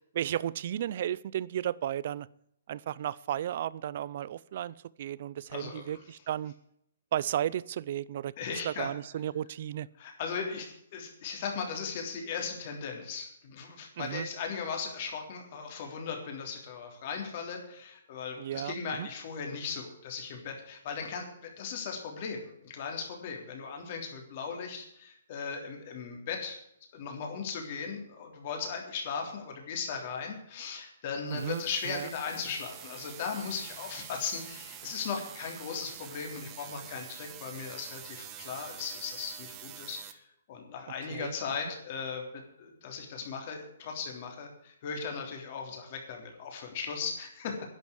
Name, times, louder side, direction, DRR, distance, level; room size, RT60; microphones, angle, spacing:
voice 1, 0.1-2.3 2.7-6.5 7.1-8.3 8.6-9.9 14.0-14.3 18.4-19.1 31.3-32.1 41.1-41.3, right 11 dB, 40° right, 21 dB, 0.5 m, -34 dB
voice 2, 8.4-8.9 10.0-26.6 26.9-40.2 40.5-47.6, left 5 dB, 30° left, 2 dB, 3.3 m, -37 dB
sound 1, 31.3-40.1, right 10 dB, 15° right, 0.9 m, -47 dB
11.0 x 8.3 x 9.7 m, 0.74 s
hypercardioid pair, 175°, 0 cm